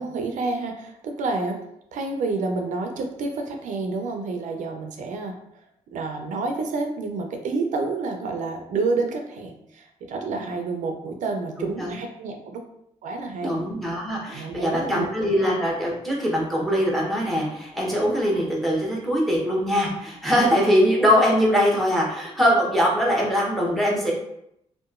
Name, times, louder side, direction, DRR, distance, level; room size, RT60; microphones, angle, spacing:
voice 1, 0.0-1.6 1.9-5.3 5.9-12.6 13.0-13.6 14.3-15.1, right 3 dB, 75° right, 4 dB, 0.4 m, -29 dB
voice 2, 11.6-12.0 13.4-24.1, equal, ahead, -3 dB, 0.8 m, -22 dB
2.8 x 2.2 x 2.4 m, 0.77 s
cardioid pair, 90°, 13 cm